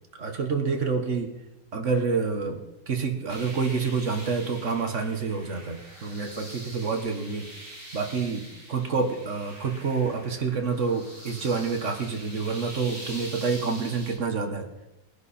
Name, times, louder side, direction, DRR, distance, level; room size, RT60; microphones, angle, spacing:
voice 1, 0.2-1.3 1.7-7.5 7.9-14.7, right 5 dB, 40° right, 4 dB, 1.5 m, -28 dB
sound 1, 3.3-14.2, right 1 dB, 15° right, 4.6 m, -44 dB
20.0 x 10.5 x 4.3 m, 0.97 s
omnidirectional pair, 2.2 m